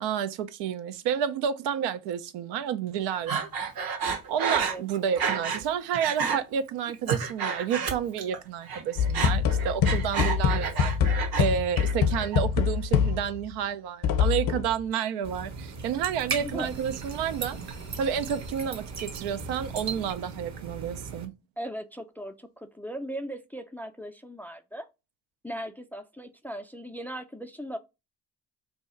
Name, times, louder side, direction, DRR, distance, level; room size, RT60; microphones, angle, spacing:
voice 1, 0.0-3.5 4.3-10.9 11.4-17.6 18.0-21.3, right 8 dB, 80° right, 0.6 m, -30 dB
Breathing, 3.3-5.7 5.9-6.4 6.8-8.4 8.6-11.5 11.8-12.4, right 6 dB, 60° right, 1.1 m, -30 dB
voice 2, 4.3-4.8 16.4-16.7 21.6-24.9 25.4-27.8, equal, 5° left, 0.3 m, -38 dB
sound 1, 9.0-13.5 14.0-14.7, left 7 dB, 55° left, 0.7 m, -25 dB
sound 2, 15.2-21.3, right 5 dB, 40° right, 0.8 m, -37 dB
2.8 x 2.3 x 4.1 m
supercardioid pair, 60°, 41 cm